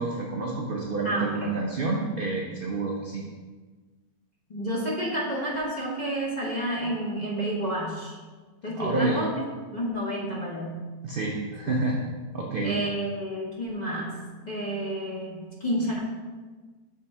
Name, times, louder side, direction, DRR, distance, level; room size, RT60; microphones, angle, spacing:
voice 1, 0.0-3.2 8.8-9.2 11.0-12.0 12.3-12.7, right 3 dB, 55° right, -2 dB, 0.6 m, -28 dB
voice 2, 1.0-1.6 2.0-2.2 4.5-8.2 8.6-9.4 9.7-10.9 11.7-11.8 12.6-14.2 14.5-16.0, equal, 30° left, -5 dB, 1.0 m, -30 dB
6.3 x 3.6 x 4.3 m, 1.3 s
omnidirectional pair, 1.7 m